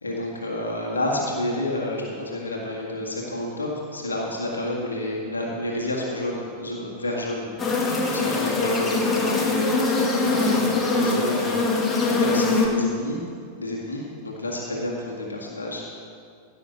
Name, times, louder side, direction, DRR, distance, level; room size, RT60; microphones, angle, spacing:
voice 1, 0.0-13.2 13.6-16.0, left 1 dB, 75° left, -2 dB, 1.9 m, -30 dB
sound 1, 7.6-12.7, left 3 dB, 15° left, 2.0 m, -22 dB
16.0 x 6.4 x 6.4 m, 2.3 s
figure-of-eight pair, 90°, 0 cm